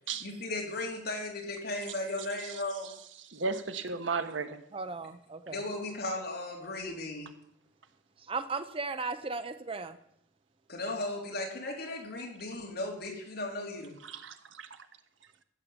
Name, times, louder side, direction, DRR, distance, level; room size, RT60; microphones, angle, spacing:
voice 1, 0.2-2.9 5.5-7.3 10.7-13.9, left 2 dB, 55° left, 3.4 m, -36 dB
voice 2, 3.3-4.6 14.1-14.7, right 4 dB, 75° right, 1.2 m, -34 dB
voice 3, 4.7-5.6 8.3-10.0, right 4 dB, 30° right, 0.6 m, -36 dB
13.5 x 8.5 x 7.2 m
head